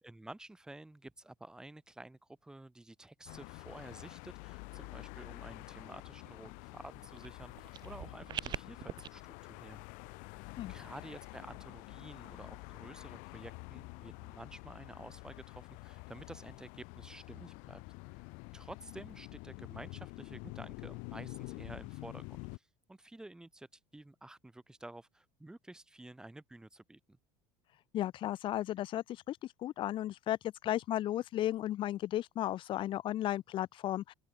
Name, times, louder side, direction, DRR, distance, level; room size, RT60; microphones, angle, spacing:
voice 1, 0.0-9.8 10.7-18.1 18.5-23.7 23.9-27.2, right 2 dB, 5° right, 2.1 m, -51 dB
sound 1, 3.3-22.6, left 31 dB, 60° left, 2.7 m, -48 dB
sound 2, 7.2-9.1, right 10 dB, 30° right, 3.0 m, -42 dB
voice 2, 27.9-34.1, left 13 dB, 35° left, 1.3 m, -35 dB
open air
cardioid pair, 170°, 15 cm